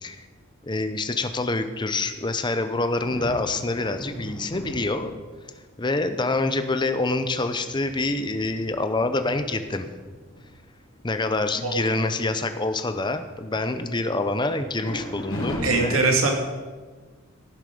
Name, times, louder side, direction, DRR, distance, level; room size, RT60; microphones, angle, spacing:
voice 1, 0.6-5.2 5.8-9.9 11.0-16.1, left 2 dB, 20° left, 9 dB, 0.7 m, -26 dB
sound 1, 2.9-5.5 6.2-6.3 6.8-10.4 10.9-11.1 11.4-11.8 12.2-13.0 14.8-15.9, left 1 dB, 70° left, 4.2 m, -38 dB
voice 2, 15.6-16.4, right 3 dB, 80° right, 1 dB, 2.3 m, -21 dB
16.5 x 7.3 x 5.2 m, 1.4 s
head